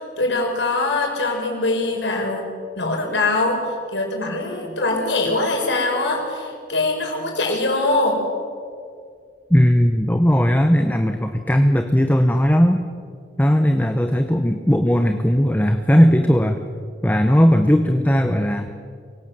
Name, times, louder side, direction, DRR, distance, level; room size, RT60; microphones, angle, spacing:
voice 1, 0.0-2.4 2.8-3.6 3.9-8.2, left 2 dB, 80° left, 1 dB, 5.5 m, -22 dB
voice 2, 9.5-12.8 13.4-16.6 17.0-18.7, equal, 10° left, 6 dB, 0.9 m, -17 dB
25.0 x 17.5 x 7.6 m, 2.2 s
head